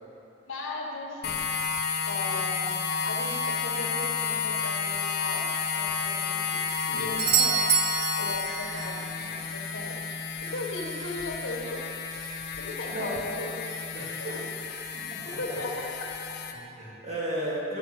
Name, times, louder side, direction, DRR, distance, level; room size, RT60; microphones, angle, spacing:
voice 1, 0.5-1.5 2.0-6.6 6.9-7.7 8.2-10.0 10.4-11.9 12.6-14.5 15.2-16.4, left 2 dB, 85° left, 0 dB, 1.3 m, -37 dB
sound 1, 1.2-16.5, left 5 dB, 55° left, 0.6 m, -31 dB
voice 2, 6.9-7.3 12.9-13.2 13.9-14.3 15.1-15.6 16.5-17.8, right 1 dB, 35° right, -7 dB, 2.3 m, -35 dB
Doorbell, 7.2-9.0 13.1-13.2, right 7 dB, 50° right, 0.4 m, -26 dB
11.0 x 4.3 x 6.4 m, 2.8 s
head